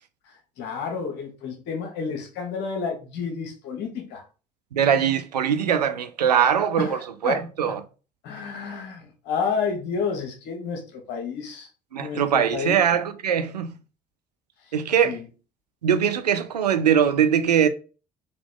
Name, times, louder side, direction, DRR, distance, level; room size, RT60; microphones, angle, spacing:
voice 1, 0.6-4.2 6.8-7.8 8.2-11.7 12.0-13.0 15.0-15.2, left 5 dB, 60° left, 1.2 m, -30 dB
voice 2, 4.7-7.8 11.9-13.8 14.7-15.2 15.8-17.7, right 8 dB, 85° right, 0.5 m, -22 dB
3.7 x 2.9 x 3.7 m
figure-of-eight pair, 55°, 20 cm